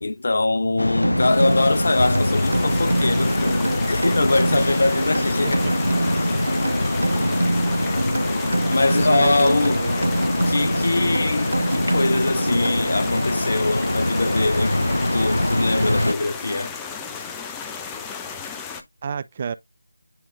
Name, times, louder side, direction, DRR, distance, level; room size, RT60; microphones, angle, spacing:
voice 1, 0.0-5.6 6.2-6.4 8.7-9.8 10.5-16.7, left 3 dB, 50° left, 1.0 m, -23 dB
sound 1, 0.8-16.1, left 1 dB, 80° left, 0.3 m, -24 dB
sound 2, 1.0-13.2, right 1 dB, 80° right, 1.1 m, -26 dB
sound 3, 1.2-18.8, left 6 dB, 10° left, 0.7 m, -34 dB
voice 2, 5.4-5.7 9.1-10.0 19.0-19.5, right 6 dB, 30° right, 0.4 m, -29 dB
10.0 x 3.7 x 2.6 m
figure-of-eight pair, 160°, 0 cm